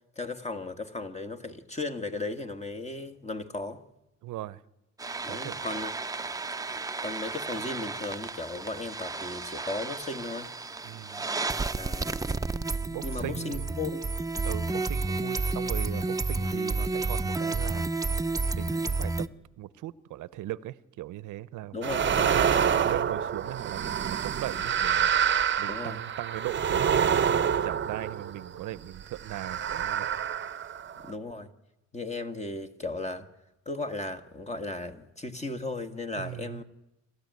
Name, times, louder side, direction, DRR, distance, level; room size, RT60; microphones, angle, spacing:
voice 1, 0.1-3.8 5.2-5.9 7.0-10.5 11.8-12.1 13.0-14.1 21.7-22.6 25.7-26.0 31.0-31.5 31.9-33.3 33.6-36.6, left 2 dB, 20° left, 1.8 m, -36 dB
voice 2, 4.2-4.6 5.3-5.7 10.8-11.2 12.8-13.7 14.4-17.9 18.5-19.3 19.6-25.1 25.6-30.1 36.2-36.6, right 15 dB, 80° right, 0.7 m, -39 dB
sound 1, 5.0-19.3, right 3 dB, 10° right, 0.7 m, -31 dB
sound 2, 21.8-28.6 29.2-31.1, right 8 dB, 40° right, 0.8 m, -27 dB
27.5 x 13.5 x 9.5 m
cardioid pair, 90°, 30 cm